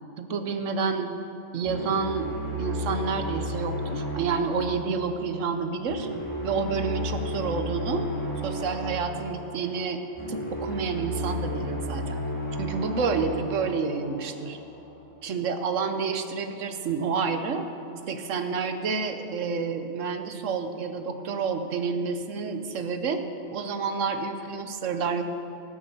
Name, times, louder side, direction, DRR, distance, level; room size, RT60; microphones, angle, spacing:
voice 1, 0.2-1.1 1.5-2.3 2.6-6.1 6.4-8.1 8.4-10.0 10.3-12.2 12.6-14.6 15.2-17.7 18.1-23.2 23.5-25.2, right 5 dB, 90° right, 8 dB, 1.3 m, -29 dB
sound 1, 1.6-14.7, equal, 10° left, 2.8 m, -33 dB
17.5 x 6.3 x 7.1 m, 2.9 s
omnidirectional pair, 1.3 m